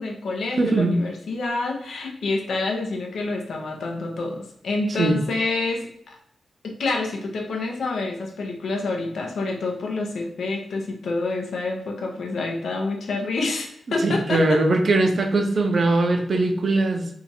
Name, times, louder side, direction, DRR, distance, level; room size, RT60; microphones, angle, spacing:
voice 1, 0.0-6.2 6.6-14.6, left 3 dB, 80° left, 2 dB, 0.7 m, -28 dB
voice 2, 0.6-1.0 5.0-5.2 14.0-17.1, right 2 dB, 55° right, 4 dB, 0.5 m, -20 dB
2.8 x 2.4 x 4.1 m, 0.68 s
cardioid pair, 75°, 0 cm